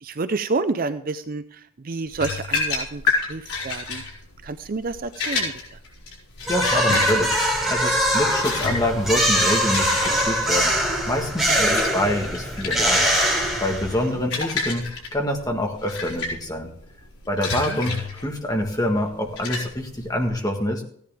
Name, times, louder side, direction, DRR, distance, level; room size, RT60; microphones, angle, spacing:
voice 1, 0.0-3.0 3.3-4.0 4.4-5.5 11.6-11.8 14.1-14.2 17.7-17.8, right 3 dB, 40° right, 11 dB, 0.5 m, -29 dB
sound 1, 2.1-20.3, left 4 dB, 85° left, 5.5 m, -30 dB
sound 2, 6.4-14.1, equal, ahead, 4.2 m, -22 dB
voice 2, 6.5-7.3 7.7-10.7 11.1-13.1 13.6-14.8 15.1-16.7 17.3-17.9 18.2-20.8, left 1 dB, 15° left, 2 dB, 1.6 m, -25 dB
15.0 x 10.5 x 3.5 m, 0.62 s
head